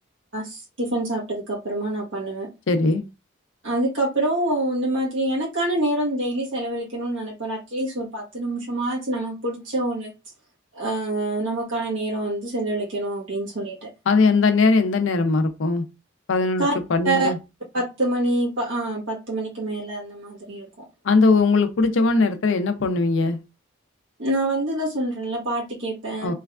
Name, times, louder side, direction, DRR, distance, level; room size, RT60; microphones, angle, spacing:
voice 1, 0.3-2.5 3.6-10.1 10.7-13.9 16.6-16.7 17.0-17.3 17.7-20.7 24.2-26.3, right 1 dB, 85° right, 1.4 m, -26 dB
voice 2, 2.7-3.0 14.1-15.8 16.3-17.4 21.0-23.4 26.2-26.3, left 3 dB, 85° left, 0.5 m, -20 dB
3.3 x 3.1 x 2.4 m
head